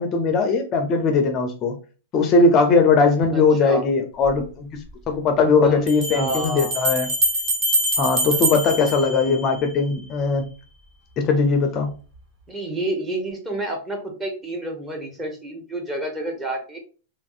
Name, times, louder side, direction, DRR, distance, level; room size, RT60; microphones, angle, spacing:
voice 1, 0.0-1.8 2.1-7.1 8.0-10.5 11.2-11.9, left 4 dB, 30° left, 5 dB, 0.4 m, -19 dB
voice 2, 3.3-3.9 5.6-6.7 8.3-9.4 12.5-16.8, right 1 dB, 15° right, 2 dB, 0.9 m, -30 dB
Bell, 4.2-4.3 5.9-9.8, right 1 dB, 30° right, 1.4 m, -24 dB
2.9 x 2.5 x 2.4 m, 0.36 s
hypercardioid pair, 135°, 0 cm